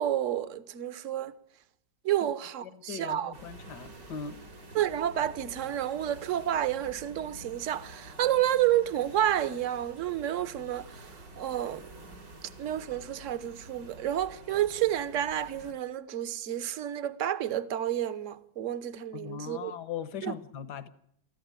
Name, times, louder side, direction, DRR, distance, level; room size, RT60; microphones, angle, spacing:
voice 1, 0.0-1.3 2.0-3.3 4.7-11.8 12.6-19.7 20.2-20.3, right 11 dB, 50° right, 1.3 m, -30 dB
voice 2, 2.6-4.4 19.1-20.9, left 7 dB, 70° left, 1.8 m, -39 dB
sound 1, 3.3-15.7, right 1 dB, 80° right, 4.0 m, -49 dB
20.5 x 14.5 x 9.1 m
omnidirectional pair, 1.9 m